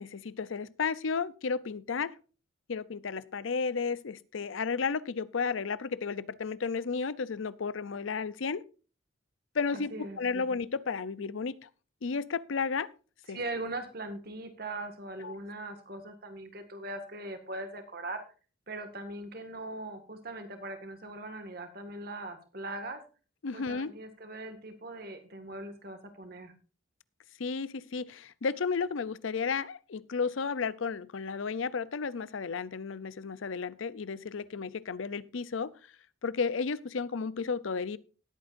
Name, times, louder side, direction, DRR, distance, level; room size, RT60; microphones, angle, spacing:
voice 1, 0.0-2.2 2.7-8.6 9.5-11.7 12.0-12.9 13.3-13.4 15.2-15.4 23.4-23.9 27.4-35.7 36.2-38.0, left 5 dB, 75° left, 18 dB, 0.6 m, -33 dB
voice 2, 9.7-10.5 13.3-18.2 18.7-23.0 23.5-26.5, right 2 dB, 50° right, 7 dB, 1.9 m, -40 dB
18.5 x 8.8 x 2.6 m, 0.35 s
head